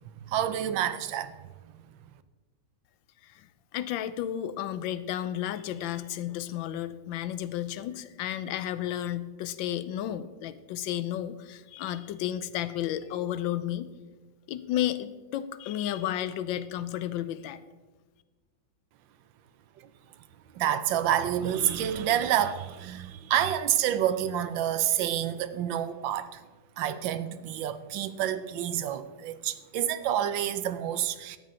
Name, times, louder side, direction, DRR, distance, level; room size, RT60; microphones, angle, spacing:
voice 1, 0.3-1.3 20.5-26.4 26.8-31.4, right 10 dB, 80° right, 12 dB, 1.4 m, -28 dB
voice 2, 3.7-13.9 14.5-17.6, left 11 dB, 85° left, 13 dB, 1.3 m, -32 dB
13.0 x 9.3 x 3.8 m, 1.3 s
omnidirectional pair, 2.0 m